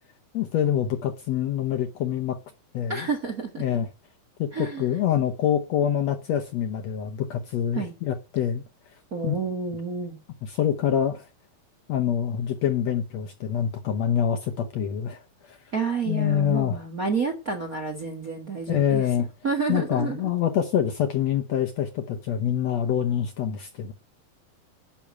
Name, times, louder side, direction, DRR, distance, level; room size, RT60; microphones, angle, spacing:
voice 1, 0.3-2.4 2.7-3.1 3.6-3.9 4.4-8.6 9.2-9.4 10.4-11.3 11.9-15.2 15.5-15.6 16.1-16.8 18.7-19.3 19.7-23.9, left 9 dB, 70° left, 1.7 m, -25 dB
voice 2, 2.9-3.6 4.5-4.8 7.7-7.9 9.1-10.2 15.7-19.1 19.4-20.3, right 5 dB, 40° right, 1.3 m, -29 dB
10.5 x 6.3 x 8.5 m
omnidirectional pair, 3.9 m